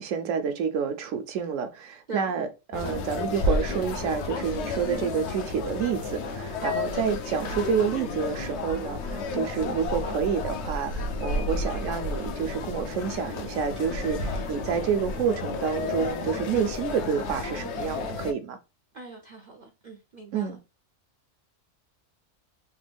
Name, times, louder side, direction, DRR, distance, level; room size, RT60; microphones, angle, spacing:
voice 1, 0.0-18.6 20.3-20.6, right 7 dB, 80° right, 1.0 m, -29 dB
sound 1, 2.7-18.3, left 3 dB, 65° left, 0.8 m, -32 dB
voice 2, 18.9-20.6, right 3 dB, 55° right, 0.5 m, -40 dB
3.3 x 2.2 x 3.3 m
omnidirectional pair, 1.3 m